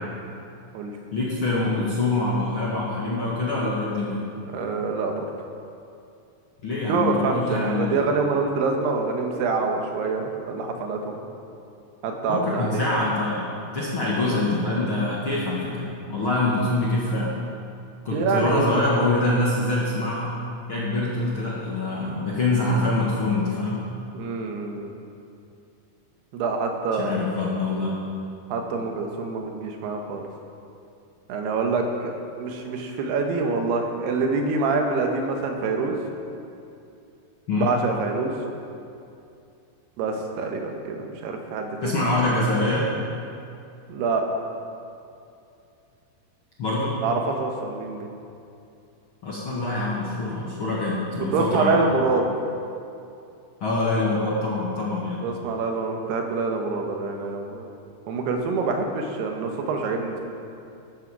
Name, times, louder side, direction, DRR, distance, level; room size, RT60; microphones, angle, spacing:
voice 1, 1.1-4.2 6.6-8.0 12.3-17.3 18.0-20.4 20.7-23.9 27.0-27.9 37.5-37.7 41.8-42.9 46.6-47.0 49.2-51.8 53.6-55.2, left 2 dB, 55° left, -5 dB, 1.5 m, -25 dB
voice 2, 4.5-5.3 6.9-11.2 12.0-12.9 18.1-18.8 24.1-24.9 26.3-27.1 28.5-30.2 31.3-32.1 32.4-36.0 37.6-38.3 40.0-42.0 43.9-44.4 47.0-48.1 51.3-52.3 55.2-57.7 58.1-60.2, right 4 dB, 90° right, 3 dB, 3.3 m, -26 dB
13.0 x 13.0 x 4.8 m, 2.6 s
omnidirectional pair, 4.5 m